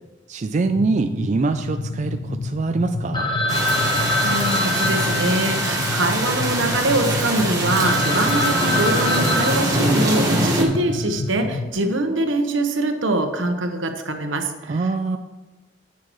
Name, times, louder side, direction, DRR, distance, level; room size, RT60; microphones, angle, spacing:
voice 1, 0.3-3.3 14.7-15.2, right 3 dB, 40° right, 7 dB, 0.4 m, -23 dB
sound 1, 0.6-11.7, left 2 dB, 75° left, 0.5 m, -29 dB
Telephone, 3.1-6.9 7.4-7.5 7.7-10.6, left 2 dB, 25° left, 0.9 m, -25 dB
sound 2, 3.5-10.6, right 2 dB, 20° right, 1.6 m, -24 dB
voice 2, 4.2-14.8, right 2 dB, 80° right, 5 dB, 1.1 m, -23 dB
10.0 x 8.4 x 3.1 m, 1.1 s
head